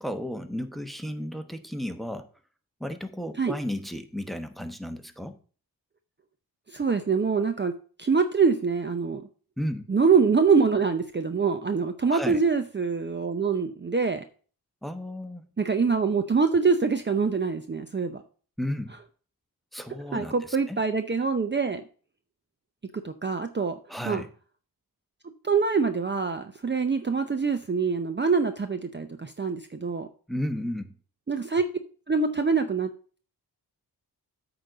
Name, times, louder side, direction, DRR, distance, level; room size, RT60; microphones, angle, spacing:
voice 1, 0.0-2.3 2.8-5.4 9.6-9.9 12.1-12.4 14.8-15.4 18.6-18.9 19.7-20.8 23.9-24.3 30.3-30.9, equal, ahead, 8 dB, 1.0 m, -33 dB
voice 2, 6.7-7.7 8.0-9.2 9.9-14.2 15.6-18.2 20.1-21.8 22.9-23.8 24.1-24.2 25.4-30.1 31.3-31.7 32.1-32.9, right 5 dB, 30° right, 8 dB, 0.7 m, -24 dB
8.6 x 4.0 x 6.7 m, 0.40 s
cardioid pair, 75°, 39 cm